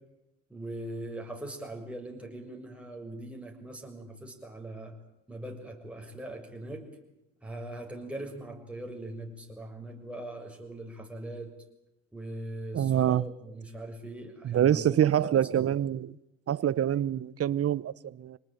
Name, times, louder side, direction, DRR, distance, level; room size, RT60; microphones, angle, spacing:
voice 1, 0.5-5.0 5.3-6.9 7.4-11.5 12.1-15.6, right 1 dB, 5° right, 6.7 m, -41 dB
voice 2, 12.7-13.3 14.4-16.1 16.5-18.4, right 10 dB, 50° right, 0.9 m, -26 dB
26.0 x 19.5 x 9.2 m
cardioid pair, 90°, 30 cm